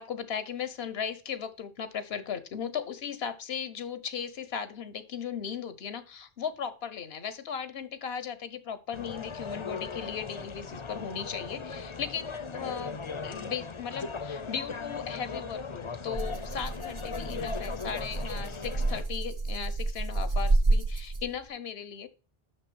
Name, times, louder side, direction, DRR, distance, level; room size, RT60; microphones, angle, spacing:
voice 1, 0.0-22.1, left 7 dB, 75° left, 13 dB, 1.1 m, -37 dB
sound 1, 8.9-19.0, left 5 dB, 35° left, 0.6 m, -38 dB
Rattle (instrument), 16.1-21.5, right 2 dB, 45° right, 1.1 m, -29 dB
6.5 x 6.4 x 6.2 m, 0.35 s
omnidirectional pair, 1.1 m